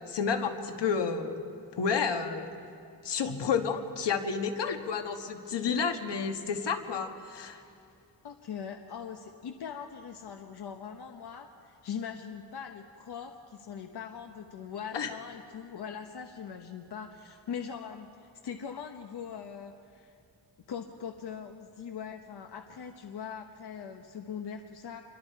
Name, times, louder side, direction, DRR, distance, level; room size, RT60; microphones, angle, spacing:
voice 1, 0.0-1.4 1.8-2.5 3.0-7.6 14.9-15.1, left 6 dB, 90° left, 5 dB, 1.6 m, -30 dB
voice 2, 8.2-20.1 20.7-25.0, left 7 dB, 70° left, 4 dB, 1.1 m, -41 dB
27.0 x 22.5 x 4.7 m, 2.5 s
wide cardioid pair, 155°, 41 cm